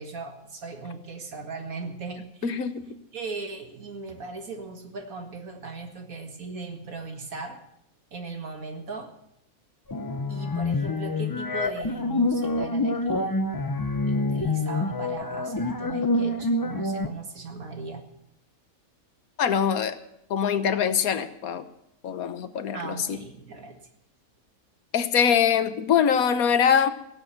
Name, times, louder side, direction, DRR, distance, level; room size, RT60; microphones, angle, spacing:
voice 1, 0.0-7.6 8.1-9.2 10.3-13.4 14.0-18.0 22.7-23.9, right 4 dB, 70° right, 4 dB, 2.3 m, -38 dB
voice 2, 2.4-2.9 19.4-20.0 20.3-21.7 22.0-23.2 24.9-26.9, left 8 dB, 75° left, 11 dB, 1.4 m, -23 dB
sound 1, 9.9-17.1, left 2 dB, 35° left, 0.3 m, -27 dB
17.0 x 8.1 x 7.9 m, 0.79 s
omnidirectional pair, 1.5 m